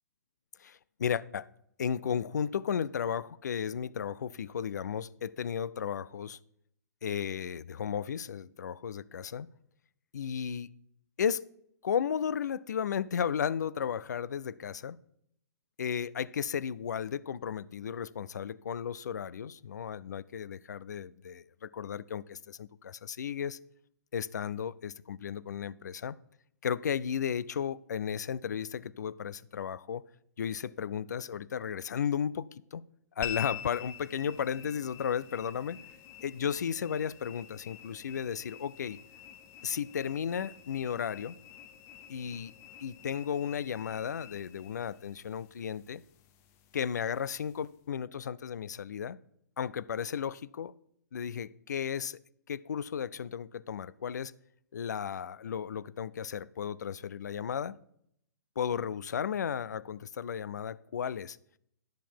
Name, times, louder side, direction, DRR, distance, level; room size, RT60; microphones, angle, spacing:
voice 1, 0.6-1.5 1.8-6.4 7.0-9.5 10.1-10.7 11.2-11.4 11.8-15.0 15.8-23.6 24.1-26.2 26.6-30.0 30.4-32.8 33.2-35.8 36.2-39.0 39.6-41.4 42.1-42.5 42.8-46.0 46.7-49.2 49.6-50.7 51.1-52.2 52.5-54.3 54.7-57.8 58.6-61.4, left 8 dB, 70° left, 21 dB, 0.4 m, -34 dB
sound 1, 33.2-47.8, left 10 dB, 30° left, 0.7 m, -47 dB
10.0 x 7.1 x 4.5 m, 0.73 s
hypercardioid pair, 125°, 10 cm